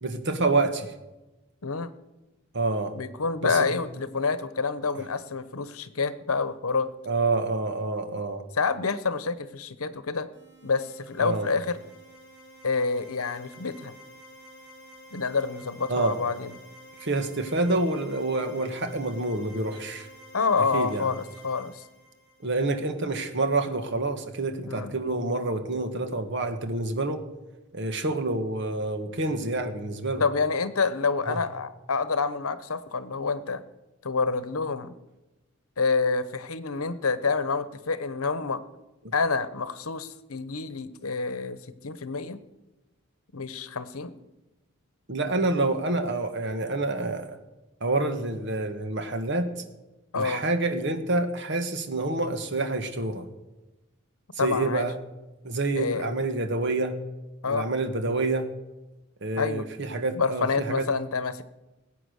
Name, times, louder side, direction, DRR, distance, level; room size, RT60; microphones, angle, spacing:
voice 1, 0.0-0.9 2.5-2.9 3.4-3.7 7.1-8.4 11.2-11.5 15.9-16.2 17.0-20.1 20.7-21.1 22.4-27.2 27.7-30.2 31.3-31.4 45.1-47.4 47.8-49.5 50.1-53.3 54.3-54.9 55.4-57.0 57.5-58.5 59.2-60.9, right 2 dB, 55° right, 8 dB, 1.5 m, -27 dB
voice 2, 2.9-6.9 8.5-10.3 10.6-11.8 12.6-13.9 15.1-16.5 20.3-21.8 24.6-24.9 30.2-33.6 34.0-35.0 35.8-38.6 39.1-41.6 41.8-42.4 43.3-44.1 50.1-50.4 54.4-54.9 55.7-56.1 57.4-57.7 59.4-59.6 60.1-61.4, left 4 dB, 85° left, 14 dB, 1.0 m, -28 dB
sound 1, 10.3-23.0, equal, 20° left, 5.9 m, -50 dB
20.5 x 8.6 x 6.5 m, 1.0 s
head